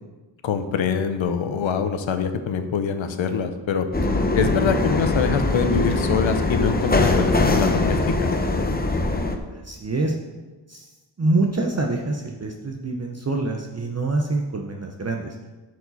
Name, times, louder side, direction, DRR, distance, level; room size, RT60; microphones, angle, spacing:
voice 1, 0.4-3.9 4.3-8.3, left 6 dB, 80° left, 8 dB, 0.9 m, -24 dB
sound 1, 3.9-9.4, left 2 dB, 20° left, 0.7 m, -22 dB
voice 2, 9.6-10.1 10.7-10.9 11.2-15.4, right 2 dB, 35° right, 2 dB, 0.7 m, -25 dB
10.5 x 4.8 x 4.1 m, 1.2 s
wide cardioid pair, 85°, 46 cm